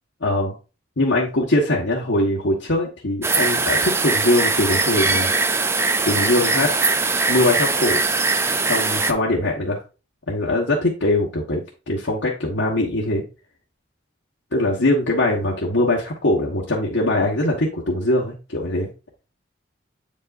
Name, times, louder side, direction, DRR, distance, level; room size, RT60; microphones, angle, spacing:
voice 1, 0.2-0.5 1.0-5.3 6.0-6.7 7.3-8.0 8.7-9.8 10.3-13.2 14.5-18.9, left 1 dB, 80° left, -4 dB, 1.3 m, -21 dB
sound 1, 3.2-9.1, right 3 dB, 15° right, 0.3 m, -21 dB
8.1 x 5.4 x 2.6 m, 0.32 s
head